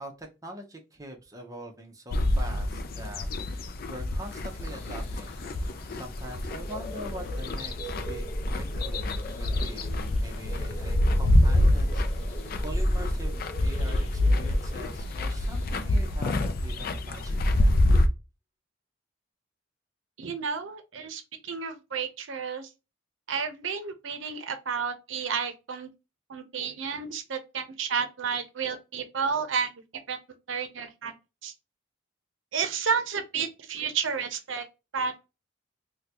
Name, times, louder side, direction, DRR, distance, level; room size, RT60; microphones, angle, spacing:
voice 1, 0.0-5.3 5.9-9.9 10.2-17.7, right 1 dB, 20° right, 0.8 m, -43 dB
sound 1, 2.1-18.1, left 1 dB, 50° left, 0.4 m, -27 dB
sound 2, 4.2-16.1, equal, 35° left, 1.0 m, -36 dB
voice 2, 20.2-22.7 23.3-25.9 26.3-29.7 30.1-30.2 30.5-31.1 31.4-31.5 32.5-34.6 34.9-35.1, right 6 dB, 80° right, 0.6 m, -31 dB
3.7 x 2.3 x 2.9 m
head